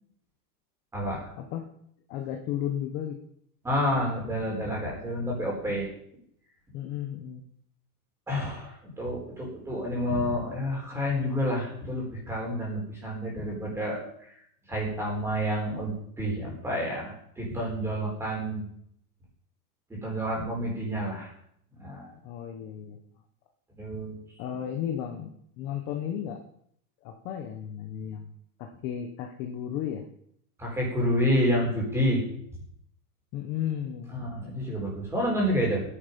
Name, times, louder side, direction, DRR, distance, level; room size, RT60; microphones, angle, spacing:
voice 1, 2.1-3.2 6.7-7.4 22.2-23.0 24.4-26.4 27.0-28.3 28.6-30.0 33.3-34.2, left 10 dB, 20° left, 4 dB, 0.9 m, -34 dB
voice 2, 3.6-5.9 8.3-14.0 14.7-18.6 19.9-21.3 21.7-22.1 23.8-24.2 30.6-32.2 34.1-35.8, equal, 5° right, -3 dB, 4.2 m, -29 dB
17.0 x 10.0 x 5.3 m, 0.69 s
supercardioid pair, 180°, 45 cm